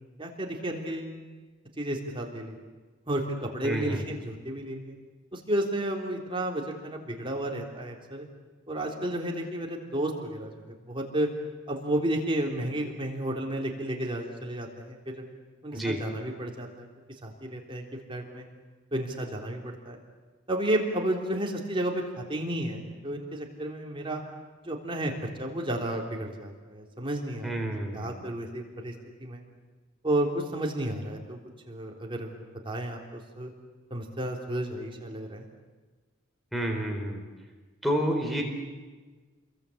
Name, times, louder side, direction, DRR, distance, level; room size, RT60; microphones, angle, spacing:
voice 1, 0.2-1.1 1.8-2.6 3.1-3.2 3.5-4.9 5.3-8.3 8.7-10.5 10.8-11.3 11.7-15.2 15.6-16.9 17.2-17.8 18.1-18.5 18.9-20.0 20.5-24.2 24.6-28.9 29.2-29.4 30.0-31.4 31.7-33.5 33.9-35.5, right 1 dB, 25° right, 0 dB, 3.6 m, -32 dB
voice 2, 3.6-4.0 15.7-16.0 27.4-28.2 36.5-37.2 37.8-38.4, equal, ahead, 0 dB, 4.4 m, -29 dB
30.0 x 22.5 x 8.7 m, 1.3 s
head